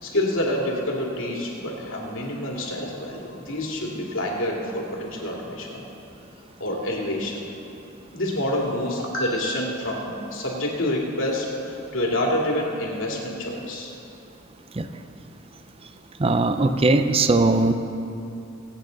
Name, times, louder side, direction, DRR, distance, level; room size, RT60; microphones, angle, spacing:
voice 1, 0.0-5.8 6.6-7.4 8.1-13.9, left 1 dB, 75° left, -2 dB, 2.4 m, -27 dB
voice 2, 16.2-17.7, right 2 dB, 30° right, 8 dB, 0.5 m, -19 dB
21.0 x 8.8 x 4.0 m, 2.7 s
head